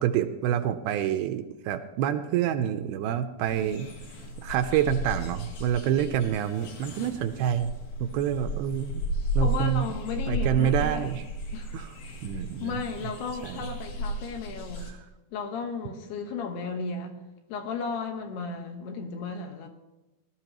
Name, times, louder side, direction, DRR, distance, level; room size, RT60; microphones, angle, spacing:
voice 1, 0.0-3.9 4.4-7.7 8.0-9.0 9.3-9.9 10.3-11.2 11.7-11.9 12.2-12.8 13.4-13.6, right 10 dB, 85° right, 9 dB, 2.4 m, -27 dB
sound 1, 3.4-14.9, equal, 65° left, 3.6 m, -34 dB
voice 2, 3.5-3.9 9.4-11.1 11.5-11.8 12.0-12.2 12.6-14.9 15.3-17.2 17.5-19.7, left 5 dB, 80° left, 4 dB, 3.3 m, -35 dB
18.5 x 12.5 x 3.0 m, 1.1 s
omnidirectional pair, 4.7 m